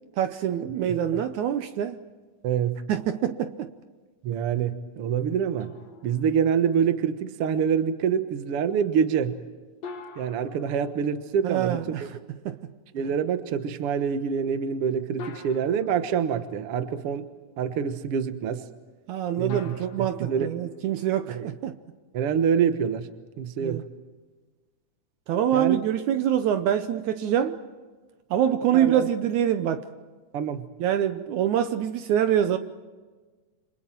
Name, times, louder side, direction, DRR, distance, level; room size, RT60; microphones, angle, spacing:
voice 1, 0.2-2.0 2.9-3.7 11.4-12.1 12.5-12.6 19.1-21.8 23.6-23.8 25.3-27.6 28.3-29.8 30.8-32.6, right 10 dB, 75° right, 2.1 m, -25 dB
voice 2, 2.4-2.8 4.2-5.7 6.0-9.4 10.1-12.1 12.9-17.3 17.6-18.6 19.4-20.5 21.3-21.5 22.1-23.1 23.4-23.8 25.5-25.8 28.7-29.1 30.3-30.6, right 7 dB, 55° right, 1.8 m, -26 dB
sound 1, 5.6-7.1 9.8-11.8 13.5-13.6 15.2-17.1 19.5-21.5, left 4 dB, 60° left, 2.7 m, -45 dB
29.5 x 26.0 x 4.5 m
omnidirectional pair, 3.7 m